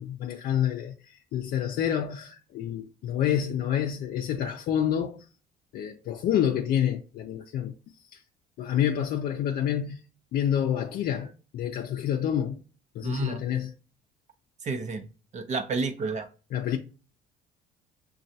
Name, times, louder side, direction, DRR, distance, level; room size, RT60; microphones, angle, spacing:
voice 1, 0.0-5.2 5.7-7.7 8.1-8.2 8.6-10.0 10.3-12.6 12.9-13.7 16.5-16.8, left 9 dB, 65° left, 0.5 m, -28 dB
voice 2, 13.0-13.4 14.6-15.1 15.3-16.3, right 4 dB, 45° right, 0.7 m, -30 dB
6.2 x 2.3 x 2.7 m
cardioid pair, 110°, 17 cm